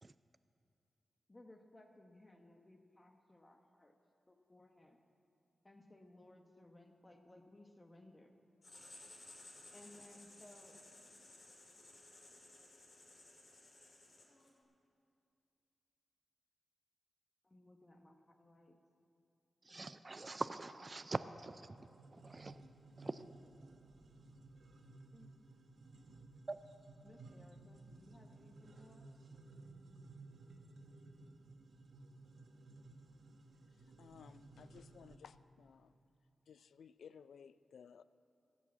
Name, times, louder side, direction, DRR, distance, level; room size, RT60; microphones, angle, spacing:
voice 1, 1.3-3.9 4.3-5.0 5.6-8.4 9.7-10.8 17.4-18.8 25.1-25.8 27.0-29.1, left 1 dB, 25° left, 4 dB, 1.1 m, -61 dB
Writing, 8.6-14.6, left 2 dB, 50° left, 3.2 m, -58 dB
voice 2, 19.6-21.8 22.1-22.6 23.0-23.2 26.5-26.6, right 3 dB, 35° right, 12 dB, 0.4 m, -43 dB
sound 1, 21.8-35.2, right 2 dB, 70° right, 1.3 m, -58 dB
voice 3, 34.0-36.0 36.5-38.0, left 7 dB, 85° left, 15 dB, 0.3 m, -58 dB
14.5 x 8.6 x 7.5 m, 2.5 s
cardioid pair, 85°, 0 cm